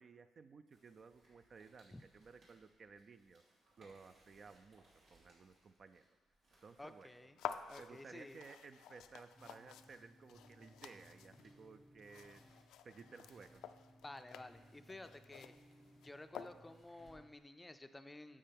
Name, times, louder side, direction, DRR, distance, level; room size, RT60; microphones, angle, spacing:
voice 1, 0.0-3.4 3.8-6.0 6.6-7.1 7.8-13.6, right 5 dB, 45° right, 11 dB, 0.4 m, -57 dB
sound 1, 0.7-17.6, right 1 dB, 70° right, 3.1 m, -73 dB
voice 2, 6.8-7.4 7.7-8.4 14.0-15.5 16.0-18.4, left 2 dB, 15° left, 9 dB, 0.4 m, -53 dB
sound 2, 7.4-16.9, left 9 dB, 85° left, 0.4 m, -52 dB
sound 3, 9.4-17.4, equal, 10° right, 1.1 m, -64 dB
9.9 x 7.5 x 3.5 m, 1.3 s
cardioid pair, 90°, 0 cm